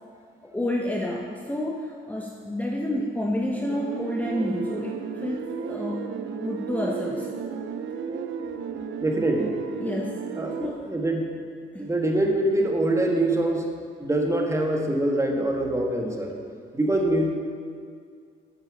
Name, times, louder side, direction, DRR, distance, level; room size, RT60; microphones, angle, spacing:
voice 1, 0.4-7.4 9.8-10.3 10.6-10.9 11.7-11.9, left 1 dB, 10° left, -1 dB, 1.0 m, -30 dB
sound 1, 3.7-10.7, right 6 dB, 70° right, 0.8 m, -33 dB
voice 2, 9.0-9.6 10.4-11.4 11.8-13.6 14.0-16.4 16.7-17.3, right 1 dB, 15° right, 1 dB, 1.6 m, -24 dB
8.1 x 7.5 x 7.2 m, 2.2 s
cardioid pair, 90°, 20 cm